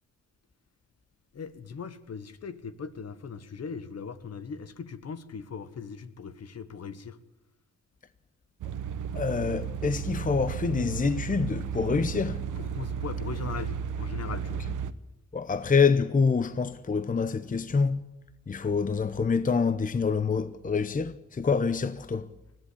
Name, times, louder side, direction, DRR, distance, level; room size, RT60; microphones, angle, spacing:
voice 1, 1.3-7.2 12.6-14.7, left 6 dB, 55° left, 1.4 m, -39 dB
sound 1, 8.6-14.9, right 7 dB, 85° right, 1.0 m, -34 dB
voice 2, 9.1-12.4 15.3-18.0 18.5-22.3, left 5 dB, 25° left, 0.8 m, -26 dB
21.0 x 14.5 x 8.5 m
cardioid pair, 90°, 30 cm